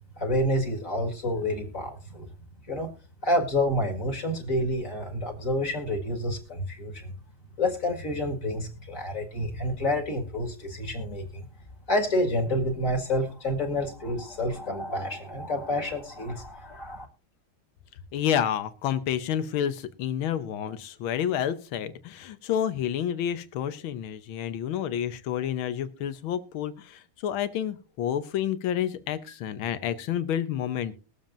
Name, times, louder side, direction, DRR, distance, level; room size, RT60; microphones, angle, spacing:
voice 1, 0.2-2.3 2.6-2.9 3.2-7.1 7.6-11.5 11.9-17.1, left 1 dB, 40° left, 2 dB, 2.2 m, -28 dB
voice 2, 18.1-30.9, left 9 dB, 80° left, 12 dB, 1.7 m, -29 dB
21.5 x 7.3 x 2.6 m, 0.36 s
omnidirectional pair, 2.2 m